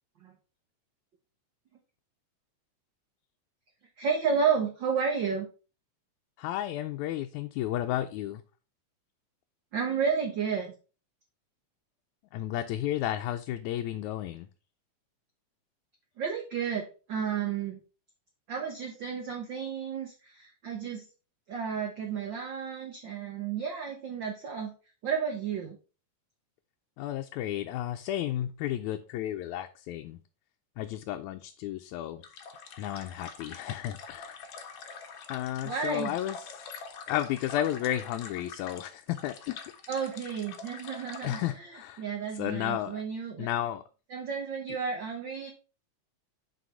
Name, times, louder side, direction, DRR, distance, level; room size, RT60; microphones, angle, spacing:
voice 1, 4.0-5.5 9.7-10.7 16.2-17.8 18.5-21.0 21.5-24.7 25.0-25.8 35.6-36.1 39.9-41.7 42.0-43.5 44.1-45.5, right 6 dB, 65° right, 2 dB, 1.2 m, -32 dB
voice 2, 6.4-8.4 12.3-14.5 27.0-30.2 30.8-32.2 32.8-34.4 35.3-36.7 37.1-39.7 41.2-42.0 42.3-43.0 43.4-43.8, left 12 dB, 80° left, 6 dB, 1.9 m, -33 dB
sound 1, 32.2-41.5, left 6 dB, 60° left, 1.4 m, -45 dB
6.2 x 4.9 x 4.8 m, 0.34 s
omnidirectional pair, 3.4 m